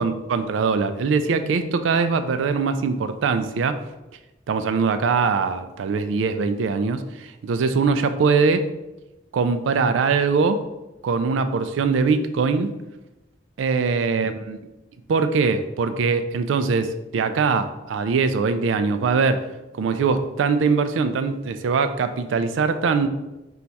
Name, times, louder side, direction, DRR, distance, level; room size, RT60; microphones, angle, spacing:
voice 1, 0.0-3.8 4.5-8.7 9.3-10.6 11.0-12.7 13.6-14.6 15.1-19.4 19.7-23.1, right 5 dB, 85° right, 10 dB, 0.3 m, -22 dB
4.4 x 2.3 x 4.0 m, 0.99 s
head